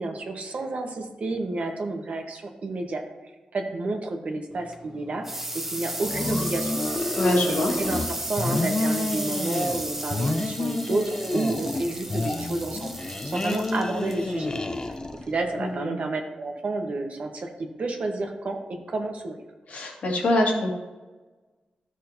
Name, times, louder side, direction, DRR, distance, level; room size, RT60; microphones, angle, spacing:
voice 1, 0.0-3.0 3.5-6.7 7.5-14.5 15.3-19.4, right 2 dB, 60° right, 3 dB, 1.2 m, -30 dB
sound 1, 4.5-15.8, right 1 dB, 10° right, 0.8 m, -35 dB
sound 2, 6.0-8.1 8.4-9.8 10.1-11.8 12.1-15.3, left 2 dB, 30° left, 0.6 m, -29 dB
voice 2, 7.1-7.7 15.6-16.0 19.7-20.7, left 1 dB, 75° left, -1 dB, 1.9 m, -24 dB
12.5 x 6.2 x 2.8 m, 1.2 s
cardioid pair, 90°, 3 cm